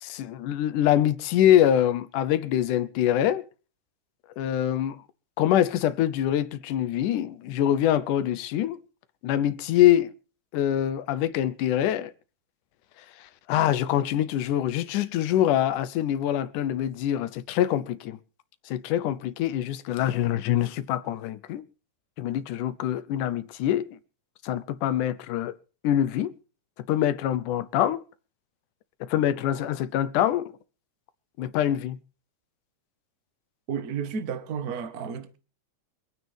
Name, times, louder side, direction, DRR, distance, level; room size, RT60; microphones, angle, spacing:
voice 1, 0.0-3.4 4.4-5.0 5.4-8.8 9.2-10.1 10.5-12.1 13.2-18.2 18.7-21.7 22.2-24.0 24.4-25.5 25.8-26.3 26.9-28.0 29.0-30.5 31.4-32.0, left 11 dB, 80° left, 2.3 m, -24 dB
voice 2, 33.7-35.4, right 6 dB, 45° right, 1.2 m, -32 dB
26.0 x 9.4 x 3.5 m
omnidirectional pair, 3.7 m